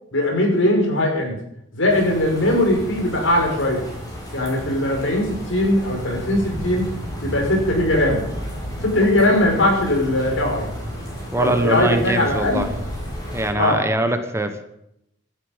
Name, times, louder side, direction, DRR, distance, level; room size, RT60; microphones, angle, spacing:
voice 1, 0.1-1.4 1.7-3.8 4.3-6.8 7.2-8.2 8.8-10.7 11.3-12.6 13.5-13.8, left 1 dB, 80° left, 1 dB, 5.9 m, -20 dB
sound 1, 1.9-13.5, equal, 20° left, 6.1 m, -32 dB
voice 2, 11.3-12.8 13.3-14.6, right 1 dB, 15° right, 8 dB, 1.3 m, -22 dB
17.0 x 12.5 x 5.4 m, 0.78 s
head